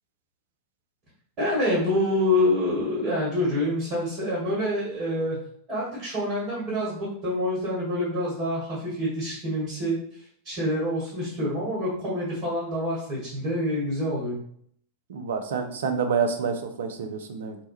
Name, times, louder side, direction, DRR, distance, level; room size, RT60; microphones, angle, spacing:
voice 1, 1.4-5.4 5.7-14.4, left 1 dB, 35° right, -6 dB, 1.4 m, -27 dB
voice 2, 15.1-17.6, right 6 dB, 60° right, 6 dB, 0.4 m, -28 dB
3.1 x 2.1 x 3.0 m, 0.64 s
figure-of-eight pair, 90°, 0 cm